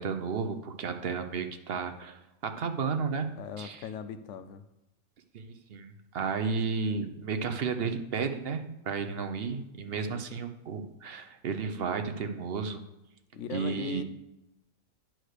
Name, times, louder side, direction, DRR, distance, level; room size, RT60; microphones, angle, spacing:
voice 1, 0.0-3.3 3.6-3.8 5.3-12.8 13.5-14.0, right 5 dB, 50° right, 7 dB, 0.8 m, -33 dB
voice 2, 3.3-4.6 9.9-10.2 13.3-14.0, left 7 dB, 60° left, 10 dB, 0.9 m, -39 dB
9.6 x 4.6 x 6.5 m, 0.92 s
omnidirectional pair, 1.6 m